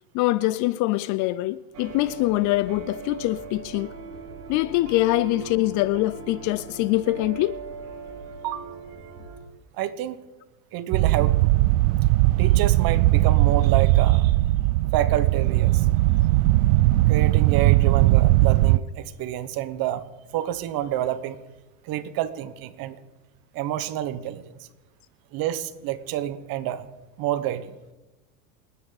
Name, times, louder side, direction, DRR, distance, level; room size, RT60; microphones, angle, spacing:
voice 1, 0.1-3.9 4.5-7.6, left 18 dB, 40° left, 0.4 m, -24 dB
sound 1, 1.7-9.4, right 4 dB, 85° right, 3.0 m, -39 dB
voice 2, 9.8-10.2 10.7-11.5 12.4-14.4 14.9-15.8 17.1-20.0 20.3-21.4 21.8-23.0 23.5-24.5 25.3-26.9 27.2-27.7, right 12 dB, 50° right, 1.4 m, -28 dB
sound 2, 10.9-18.8, right 18 dB, 65° right, 0.6 m, -19 dB
28.5 x 10.0 x 4.1 m
hypercardioid pair, 105°, 46 cm